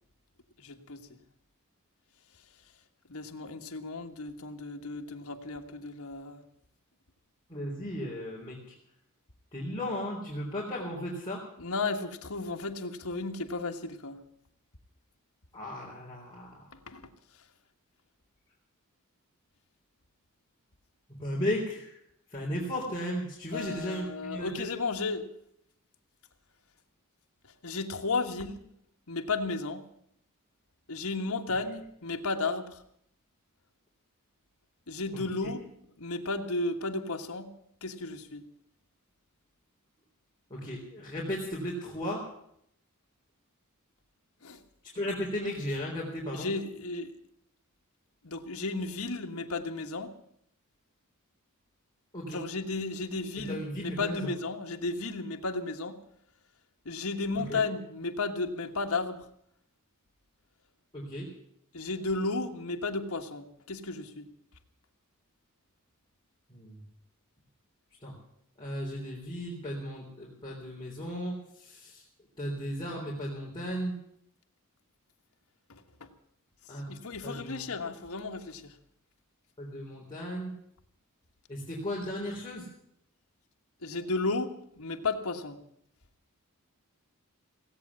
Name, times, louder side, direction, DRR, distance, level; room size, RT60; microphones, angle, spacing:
voice 1, 0.6-1.1 3.1-6.4 11.6-14.2 16.9-17.1 23.5-25.3 27.6-28.6 29.1-29.8 30.9-32.8 34.9-35.6 36.0-37.5 37.8-38.4 44.4-44.6 46.3-47.1 48.2-50.1 52.3-56.0 56.8-59.2 61.7-64.3 75.7-76.1 76.9-78.7 83.8-85.6, left 3 dB, 75° left, 4 dB, 1.6 m, -34 dB
voice 2, 7.5-8.6 9.5-11.4 15.5-16.6 21.2-21.9 22.3-24.7 35.1-35.2 40.5-42.2 44.9-46.5 52.1-52.4 53.5-54.2 57.5-57.6 60.9-61.3 66.5-66.8 68.0-68.1 68.6-72.0 72.4-74.0 76.7-76.9 77.2-77.7 79.6-80.5 81.5-82.7, equal, 20° left, -5 dB, 3.6 m, -35 dB
17.0 x 8.7 x 9.5 m, 0.71 s
head